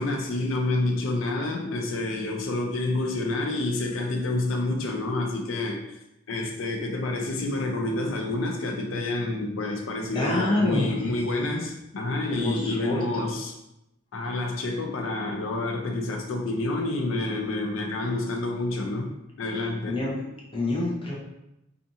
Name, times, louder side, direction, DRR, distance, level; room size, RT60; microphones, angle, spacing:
voice 1, 0.0-6.0 6.3-13.5 14.1-19.1 19.4-20.0, left 2 dB, 80° left, 2 dB, 0.5 m, -28 dB
voice 2, 10.1-11.1 12.3-13.3 19.9-20.2 20.5-21.1, left 2 dB, 25° left, -4 dB, 0.6 m, -27 dB
2.5 x 2.5 x 2.7 m, 0.87 s
head